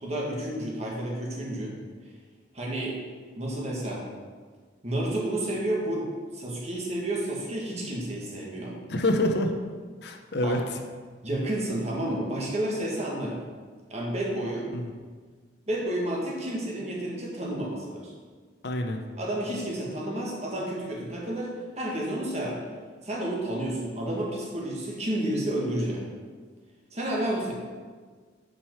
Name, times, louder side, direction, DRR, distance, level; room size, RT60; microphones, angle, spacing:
voice 1, 0.0-1.7 2.5-3.0 3.3-4.0 4.8-6.1 6.3-8.8 10.4-10.6 11.2-13.4 13.9-14.7 15.7-18.1 19.2-22.6 23.0-26.0 26.9-27.5, right 1 dB, 35° right, -2 dB, 1.7 m, -30 dB
voice 2, 8.9-9.5 10.0-10.8 14.7-14.9 18.6-19.0, left 1 dB, 60° left, 5 dB, 0.7 m, -26 dB
8.8 x 5.2 x 4.6 m, 1.5 s
head